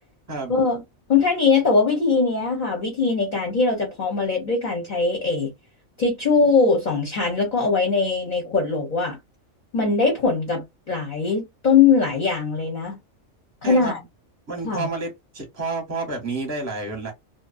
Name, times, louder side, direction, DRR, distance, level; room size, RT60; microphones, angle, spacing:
voice 1, 0.5-0.8 1.1-5.5 6.0-9.2 9.7-13.0 13.6-14.0 14.6-14.9, left 4 dB, 45° left, 0.7 m, -21 dB
voice 2, 13.6-13.9 14.5-17.1, right 3 dB, 15° right, 0.7 m, -30 dB
2.6 x 2.1 x 2.4 m
omnidirectional pair, 1.3 m